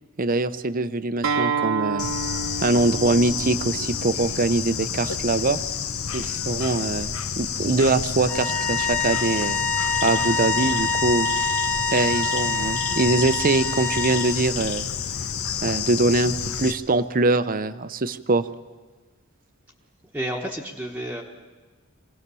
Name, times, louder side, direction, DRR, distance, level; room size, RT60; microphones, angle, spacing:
voice 1, 0.2-2.1 2.6-5.6 6.1-9.6 10.0-11.4 11.9-14.9 15.6-18.5, right 3 dB, 40° right, 14 dB, 0.7 m, -23 dB
Acoustic guitar, 1.2-6.4, right 5 dB, 65° right, 1.1 m, -31 dB
Bird / Insect, 2.0-16.7, left 7 dB, 90° left, 1.1 m, -29 dB
sound 1, 8.3-14.4, left 3 dB, 10° left, 0.7 m, -26 dB
voice 2, 20.1-21.2, right 1 dB, 10° right, 0 dB, 1.2 m, -30 dB
24.0 x 17.5 x 6.9 m, 1.3 s
head